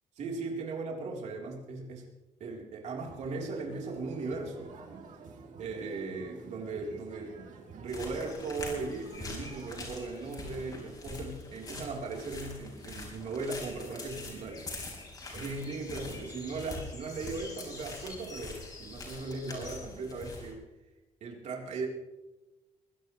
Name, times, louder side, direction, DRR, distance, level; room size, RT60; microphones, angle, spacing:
voice 1, 0.2-2.0 2.4-4.7 5.6-7.4 7.7-14.7 15.3-20.6 21.2-21.9, right 3 dB, 70° right, 0 dB, 3.8 m, -38 dB
sound 1, 3.0-9.7, right 4 dB, 85° right, 2.8 m, -47 dB
sound 2, 7.9-20.5, left 3 dB, 30° left, 4.5 m, -44 dB
22.5 x 17.0 x 3.2 m, 1.1 s
cardioid pair, 165°, 13 cm